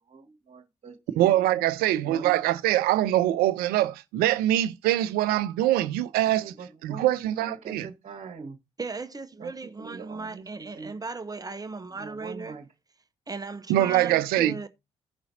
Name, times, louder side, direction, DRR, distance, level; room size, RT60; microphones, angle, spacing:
voice 1, 0.1-1.4 2.0-2.4 6.4-8.6 9.4-9.5 9.8-10.9 11.9-12.7, right 5 dB, 45° right, 1.7 m, -42 dB
voice 2, 1.2-6.4 6.8-7.9 13.7-14.6, right 13 dB, 70° right, 0.7 m, -23 dB
voice 3, 8.8-12.6 13.3-14.7, right 3 dB, 25° right, 1.0 m, -37 dB
16.5 x 5.6 x 2.7 m
figure-of-eight pair, 40°, 16 cm